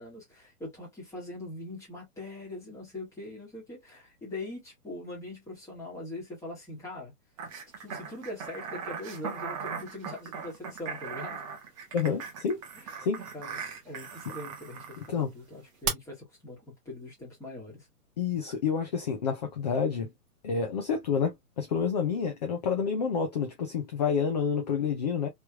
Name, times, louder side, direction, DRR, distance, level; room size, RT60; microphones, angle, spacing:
voice 1, 0.0-7.1 7.8-11.4 12.7-12.9 13.3-17.9, left 2 dB, 5° left, 1.5 m, -42 dB
sound 1, 7.4-15.1 15.8-15.9, right 7 dB, 20° right, 0.7 m, -38 dB
voice 2, 11.9-12.6 13.0-13.2 15.0-15.3 18.2-20.1 20.4-25.3, left 6 dB, 30° left, 0.5 m, -29 dB
3.2 x 3.1 x 2.2 m
hypercardioid pair, 160°, 45 cm